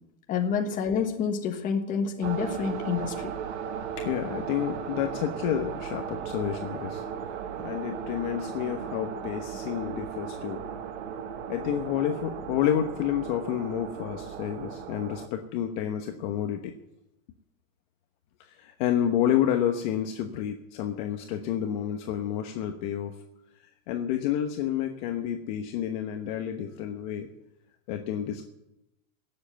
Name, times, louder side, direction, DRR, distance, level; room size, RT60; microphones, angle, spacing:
voice 1, 0.3-3.3, left 6 dB, 20° left, 3 dB, 1.4 m, -28 dB
sound 1, 2.2-15.3, right 7 dB, 55° right, 1.5 m, -36 dB
voice 2, 4.0-7.0 7.6-10.6 11.5-16.7 18.5-23.2 23.9-27.3 27.9-28.5, left 10 dB, 35° left, 4 dB, 1.1 m, -29 dB
18.5 x 7.7 x 8.0 m, 0.87 s
supercardioid pair, 165°, 40 cm